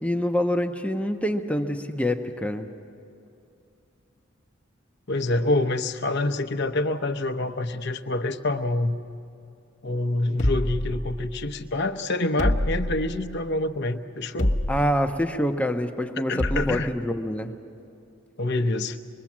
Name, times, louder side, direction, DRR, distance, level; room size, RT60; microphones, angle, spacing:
voice 1, 0.0-2.7 14.7-17.5, equal, 5° left, 5 dB, 0.8 m, -26 dB
voice 2, 5.1-9.0 9.8-14.5 16.3-16.9 18.4-19.0, left 2 dB, 60° left, 7 dB, 0.9 m, -26 dB
sound 1, 10.4-11.5 12.4-13.3 14.4-15.1 16.4-16.9, left 1 dB, 35° left, 1.0 m, -26 dB
24.5 x 21.5 x 7.3 m, 2.5 s
head